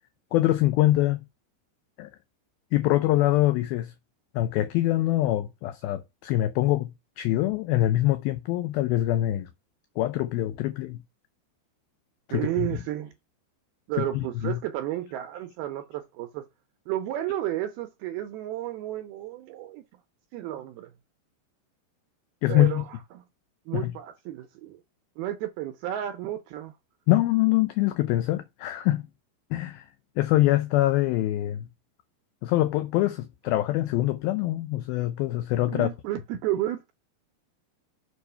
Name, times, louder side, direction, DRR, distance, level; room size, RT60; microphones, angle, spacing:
voice 1, 0.3-1.2 2.0-2.1 2.7-3.9 4.3-6.9 7.2-9.5 10.0-11.0 12.3-12.8 14.0-14.6 22.4-22.8 23.7-23.9 27.1-29.1 29.5-29.9 30.2-31.7 32.4-35.9, left 15 dB, 90° left, 2.1 m, -24 dB
voice 2, 12.3-13.1 13.9-16.4 16.9-19.8 20.3-20.9 22.5-23.2 23.7-24.8 25.2-26.7 35.7-36.9, right 13 dB, 80° right, 2.2 m, -32 dB
6.8 x 4.7 x 5.5 m
omnidirectional pair, 5.0 m